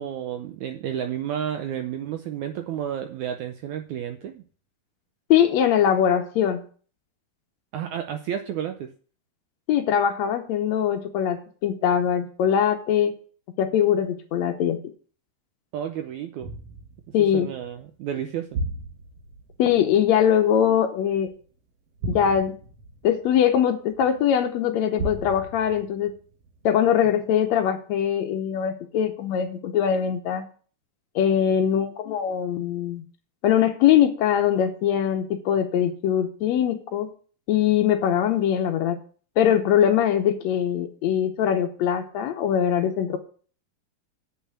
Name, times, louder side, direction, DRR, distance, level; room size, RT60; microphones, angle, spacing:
voice 1, 0.0-4.4 7.7-8.9 15.7-16.6 17.1-18.6 27.0-27.1, right 9 dB, 85° right, 7 dB, 1.7 m, -31 dB
voice 2, 5.3-6.6 9.7-13.1 13.6-14.8 17.1-17.5 19.6-21.3 22.1-22.6 23.0-26.1 26.6-30.4 31.1-33.0 33.4-37.1 37.5-39.0 39.4-43.2, left 9 dB, 80° left, 5 dB, 1.6 m, -22 dB
sound 1, 16.4-21.4 21.9-24.3 24.9-27.0 27.4-27.5, right 2 dB, 60° right, 1.7 m, -36 dB
8.4 x 5.7 x 7.3 m, 0.42 s
omnidirectional pair, 4.1 m